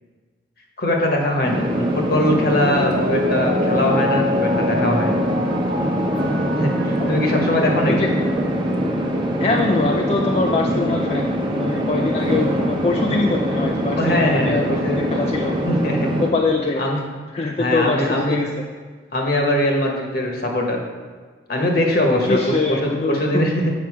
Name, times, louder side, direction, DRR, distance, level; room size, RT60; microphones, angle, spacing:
voice 1, 0.8-5.2 6.6-8.1 14.0-15.0 15.6-16.1 16.8-17.0 17.6-18.4 19.1-20.8 21.5-23.7, left 1 dB, 60° left, 1 dB, 1.3 m, -21 dB
sound 1, 1.4-16.3, equal, 25° right, 0.9 m, -22 dB
Mallet percussion, 2.6-8.1 8.5-8.6, left 2 dB, 75° right, 0.9 m, -28 dB
voice 2, 9.4-11.3 11.6-15.6 16.2-16.8 17.3-18.6 22.3-23.4, left 3 dB, 35° left, 1 dB, 0.4 m, -23 dB
7.7 x 5.6 x 4.8 m, 1.5 s
head